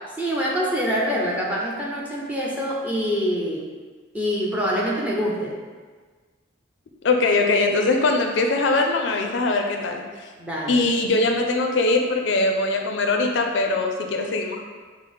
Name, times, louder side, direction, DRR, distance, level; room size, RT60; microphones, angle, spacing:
voice 1, 0.2-3.7 4.1-5.6 10.4-10.9, equal, 10° right, -5 dB, 0.5 m, -25 dB
voice 2, 7.0-10.3 10.7-14.6, left 3 dB, 70° left, 3 dB, 0.4 m, -21 dB
5.3 x 2.0 x 3.5 m, 1.4 s
head